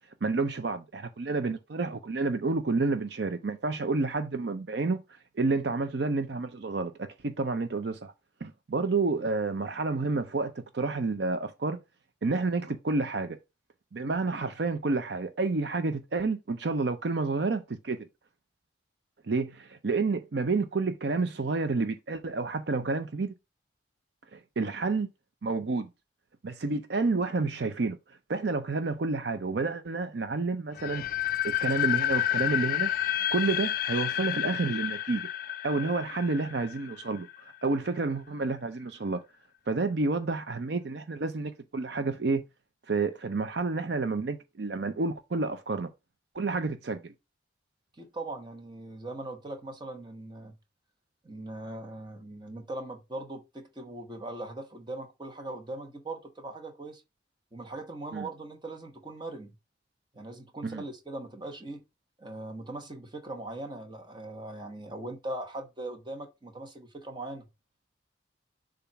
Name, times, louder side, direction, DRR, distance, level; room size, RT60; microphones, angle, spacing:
voice 1, 0.2-5.0 5.4-8.1 8.4-11.8 12.2-13.4 13.9-18.0 19.3-23.3 24.3-25.1 25.4-25.9 26.4-28.0 28.3-31.0 31.4-32.9 33.3-35.3 35.6-39.2 39.7-42.4 42.9-45.9 46.3-47.1 58.1-58.3 60.6-60.8, right 3 dB, 60° right, 0.5 m, -29 dB
sound 1, 30.8-37.6, left 11 dB, 45° left, 0.4 m, -30 dB
voice 2, 47.9-50.6 51.2-57.0 57.5-59.5 60.1-61.8 62.2-67.5, right 2 dB, 25° right, 1.1 m, -40 dB
7.0 x 2.5 x 5.7 m
head